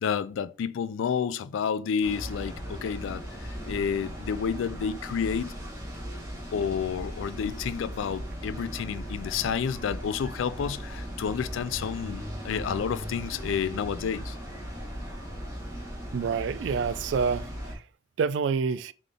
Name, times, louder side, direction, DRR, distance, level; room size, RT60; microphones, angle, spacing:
voice 1, 0.0-5.5 6.5-14.4, left 7 dB, 85° left, 0.3 m, -30 dB
sound 1, 2.0-17.7, equal, 15° right, 1.3 m, -38 dB
voice 2, 16.1-17.8 18.2-18.9, right 5 dB, 70° right, 0.3 m, -27 dB
3.7 x 3.7 x 3.4 m
head